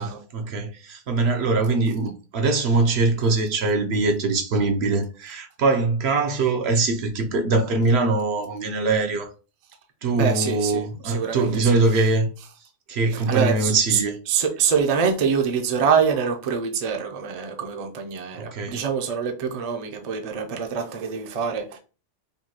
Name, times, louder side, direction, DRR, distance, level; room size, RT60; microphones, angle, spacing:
voice 1, 0.0-9.3 10.0-12.3 12.9-14.2 18.3-18.8, right 3 dB, 65° right, 0.9 m, -22 dB
voice 2, 10.1-11.8 13.1-14.0 14.3-21.8, right 6 dB, 45° right, 0.6 m, -25 dB
5.3 x 2.2 x 2.9 m
omnidirectional pair, 1.2 m